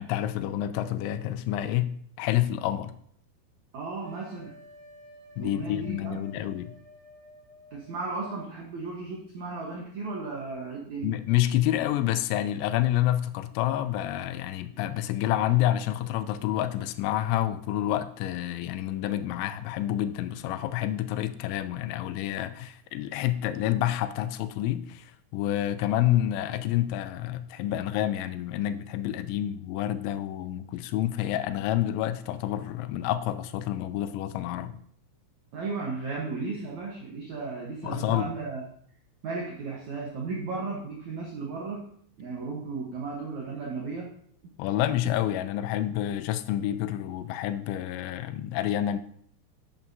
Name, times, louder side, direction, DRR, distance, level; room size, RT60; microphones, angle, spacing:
voice 1, 0.0-2.9 5.4-6.7 11.0-34.8 37.8-38.3 44.6-49.0, left 13 dB, 90° left, 11 dB, 3.0 m, -28 dB
voice 2, 3.7-4.5 5.4-6.2 7.7-11.2 35.5-38.6 39.2-41.8 42.2-44.1 45.0-45.1, right 4 dB, 90° right, -1 dB, 1.6 m, -35 dB
sound 1, 4.0-8.4, left 1 dB, 55° right, 2.5 m, -53 dB
11.0 x 8.8 x 2.7 m, 0.64 s
omnidirectional pair, 5.2 m